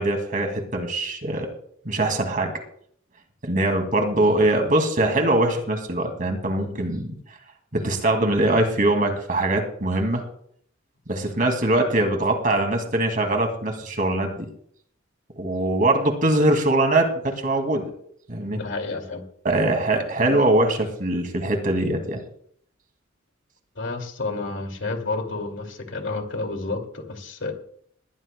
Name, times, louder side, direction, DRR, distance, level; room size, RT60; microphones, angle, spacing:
voice 1, 0.0-1.5 1.8-2.5 3.4-7.1 7.7-10.2 11.1-14.4 15.4-17.9 18.3-18.6 19.4-22.2, right 2 dB, 45° right, 4 dB, 2.4 m, -22 dB
voice 2, 18.5-19.2 23.8-27.5, left 3 dB, 65° left, 4 dB, 2.5 m, -30 dB
20.5 x 15.0 x 2.3 m, 0.65 s
head